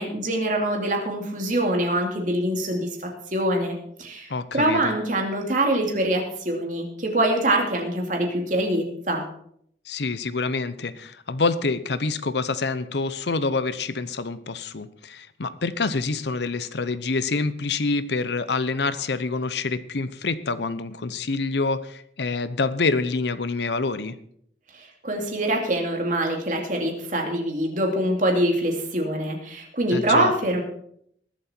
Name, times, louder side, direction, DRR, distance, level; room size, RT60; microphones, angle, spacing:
voice 1, 0.0-9.2 24.7-30.6, right 1 dB, 45° right, 1 dB, 2.7 m, -24 dB
voice 2, 4.3-4.9 9.9-24.2 29.9-30.3, left 3 dB, 70° left, 14 dB, 0.8 m, -26 dB
21.0 x 7.6 x 4.5 m, 0.68 s
head